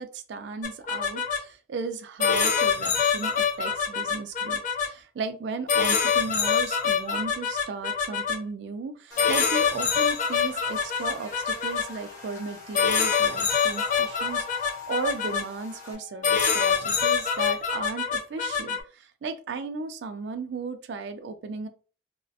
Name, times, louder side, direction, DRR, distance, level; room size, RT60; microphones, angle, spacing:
voice 1, 0.0-21.7, right 4 dB, 70° right, 9 dB, 0.3 m, -35 dB
sound 1, 0.6-1.4 2.2-4.9 5.7-8.4 9.2-11.8 12.7-15.4 16.2-18.8, left 6 dB, 45° left, 0.4 m, -25 dB
Buzz, 9.1-15.9, left 5 dB, 20° left, 0.8 m, -45 dB
Wind instrument woodwind instrument, 11.8-17.7, left 7 dB, 35° right, 0.7 m, -51 dB
2.3 x 2.1 x 2.6 m, 0.37 s
head